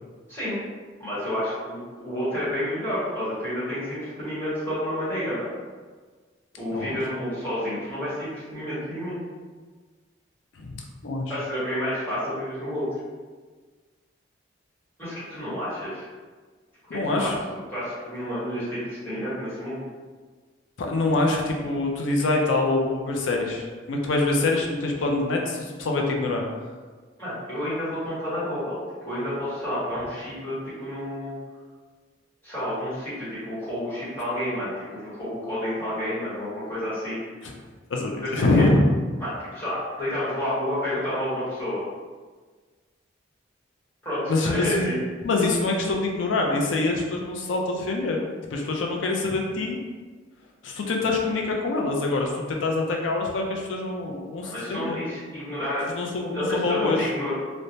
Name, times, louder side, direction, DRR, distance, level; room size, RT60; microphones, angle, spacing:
voice 1, 0.3-0.6 1.0-5.6 6.5-9.2 11.3-12.9 15.0-16.0 17.1-19.8 27.2-31.3 32.4-37.2 38.2-38.6 39.2-41.8 44.0-45.0 54.4-55.8 56.3-57.3, left 1 dB, 10° left, -13 dB, 1.2 m, -30 dB
voice 2, 10.6-11.3 16.9-17.4 20.8-26.5 37.4-37.5 37.9-38.8 44.3-44.9 45.2-48.2 48.5-49.8 50.6-55.0 55.9-57.1, left 2 dB, 85° left, 1 dB, 0.5 m, -25 dB
3.1 x 2.1 x 2.6 m, 1.4 s
head